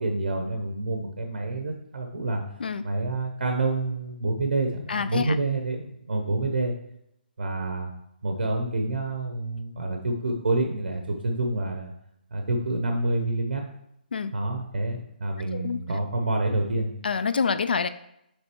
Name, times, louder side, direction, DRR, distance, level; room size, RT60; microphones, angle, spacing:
voice 1, 0.0-2.4 2.8-6.7 7.4-7.9 8.2-11.9 12.3-13.6 14.3-16.9, right 2 dB, 75° right, 3 dB, 1.0 m, -28 dB
voice 2, 4.9-5.4 14.1-14.3 15.5-15.8 17.0-17.9, left 5 dB, 65° left, 13 dB, 0.4 m, -26 dB
6.6 x 3.4 x 4.5 m, 0.79 s
hypercardioid pair, 175°, 6 cm